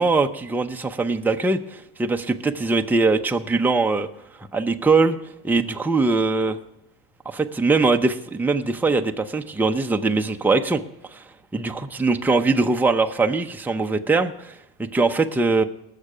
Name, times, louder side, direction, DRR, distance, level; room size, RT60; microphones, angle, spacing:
voice 1, 0.0-4.1 4.5-5.2 5.4-6.6 7.3-10.8 11.1-11.2 11.5-14.5 14.8-15.6, right 3 dB, 5° right, 5 dB, 0.6 m, -21 dB
19.5 x 6.6 x 4.9 m, 0.85 s
supercardioid pair, 105°, 45 cm